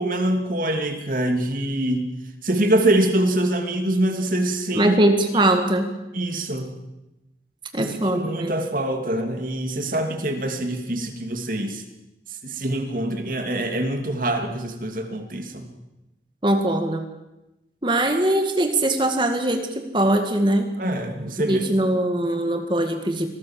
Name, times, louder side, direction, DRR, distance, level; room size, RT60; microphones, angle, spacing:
voice 1, 0.0-2.1 2.4-4.9 5.3-5.5 6.1-6.8 7.8-11.8 12.4-15.7 20.8-21.7, right 1 dB, 50° right, 5 dB, 2.9 m, -24 dB
voice 2, 4.7-5.9 7.7-8.5 16.4-17.0 17.8-20.7 21.4-23.3, right 1 dB, 25° right, 6 dB, 2.0 m, -21 dB
25.5 x 18.5 x 7.6 m, 0.96 s
head